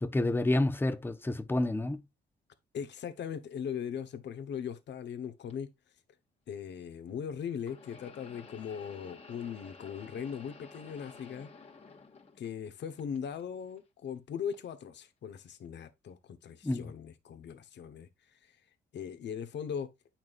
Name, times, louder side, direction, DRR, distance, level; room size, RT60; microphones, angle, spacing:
voice 1, 0.0-2.0 16.6-16.9, left 2 dB, 10° left, 0.8 m, -29 dB
voice 2, 2.7-5.7 6.5-11.5 12.4-18.1 18.4-18.5 18.9-19.9, left 7 dB, 65° left, 1.2 m, -39 dB
sound 1, 5.5-5.6 7.6-12.7 13.0-13.8 14.5-14.7 15.6-15.7, left 4 dB, 30° left, 1.9 m, -52 dB
9.0 x 5.9 x 2.5 m
cardioid pair, 90°, 20 cm